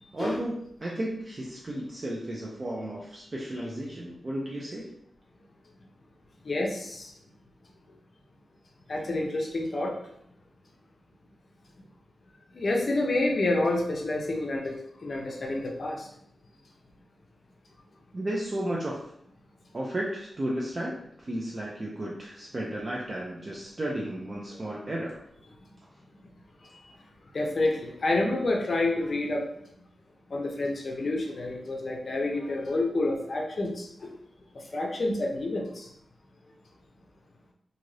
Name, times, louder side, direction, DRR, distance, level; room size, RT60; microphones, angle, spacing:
voice 1, 0.1-0.5 0.8-5.0 18.1-19.0 19.7-25.3, right 1 dB, 35° right, -3 dB, 0.4 m, -33 dB
voice 2, 6.4-7.1 8.9-10.0 12.5-16.1 27.3-29.5 30.3-34.1 34.5-35.9, left 2 dB, 50° left, 1 dB, 0.5 m, -28 dB
2.6 x 2.5 x 3.1 m, 0.73 s
wide cardioid pair, 120°, 0 cm